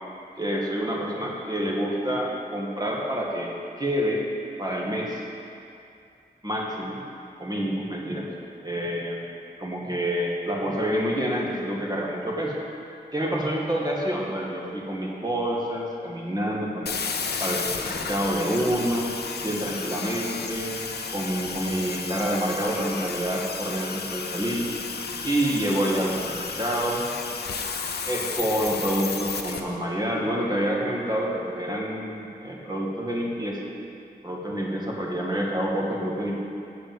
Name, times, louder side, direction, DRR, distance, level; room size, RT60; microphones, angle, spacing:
voice 1, 0.4-4.3 4.6-5.2 6.4-7.0 7.4-8.3 8.6-9.2 9.6-12.5 13.1-16.9 17.4-19.1 19.4-20.9 21.1-24.8 25.2-27.1 28.0-33.6 34.2-36.4, equal, 25° right, -3 dB, 1.8 m, -27 dB
sound 1, 16.9-29.6, left 5 dB, 75° left, 0.6 m, -33 dB
7.8 x 4.9 x 7.2 m, 2.5 s
cardioid pair, 60°, 17 cm